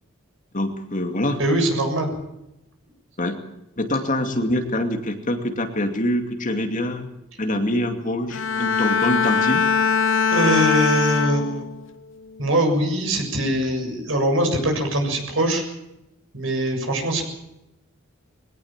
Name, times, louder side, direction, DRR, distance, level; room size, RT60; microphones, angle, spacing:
voice 1, 0.5-1.4 3.2-3.4 3.8-7.1 7.4-9.6, left 1 dB, 40° left, 5 dB, 2.6 m, -25 dB
voice 2, 1.4-2.1 10.3-11.7 12.4-15.6 16.3-17.2, right 1 dB, 70° right, 3 dB, 7.3 m, -22 dB
Bowed string instrument, 8.3-11.9 12.3-12.7, left 6 dB, 65° left, 1.1 m, -22 dB
22.0 x 18.0 x 7.5 m, 0.88 s
head